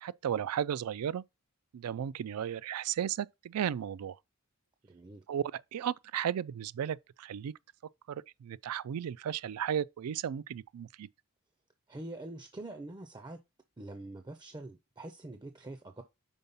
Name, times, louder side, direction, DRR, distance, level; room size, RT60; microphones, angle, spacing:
voice 1, 0.0-1.2 1.7-4.2 5.3-7.5 8.1-11.1, right 9 dB, 85° right, 0.3 m, -34 dB
voice 2, 4.8-5.2 11.9-13.4 13.8-16.0, right 2 dB, 20° right, 0.5 m, -45 dB
5.4 x 4.5 x 5.5 m
head